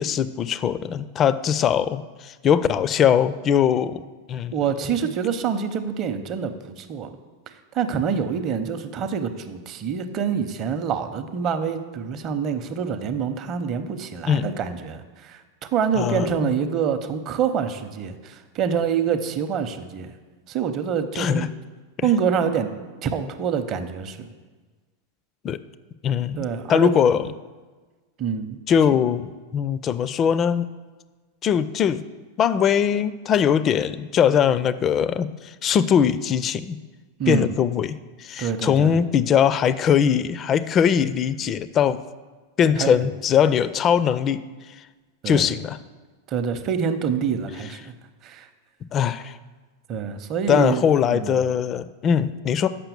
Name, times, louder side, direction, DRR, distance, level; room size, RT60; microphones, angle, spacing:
voice 1, 0.0-4.0 4.3-4.5 14.3-14.5 16.0-16.5 21.2-21.5 25.4-25.6 26.0-26.4 26.7-27.2 28.7-30.7 31.4-32.0 32.4-36.8 37.3-42.0 42.6-44.5 45.3-45.8 48.9-49.3 50.5-52.7, left 8 dB, 30° left, 15 dB, 0.3 m, -21 dB
voice 2, 4.5-7.2 7.5-15.4 15.7-20.1 20.5-21.5 22.0-22.7 23.0-24.3 26.4-26.9 28.2-28.6 37.2-37.5 38.4-39.0 42.8-43.1 45.2-45.5 46.3-47.9 48.2-48.5 49.9-50.8 51.1-51.4, right 7 dB, 35° right, 9 dB, 0.7 m, -26 dB
6.8 x 5.7 x 6.9 m, 1.3 s
figure-of-eight pair, 90°, 0 cm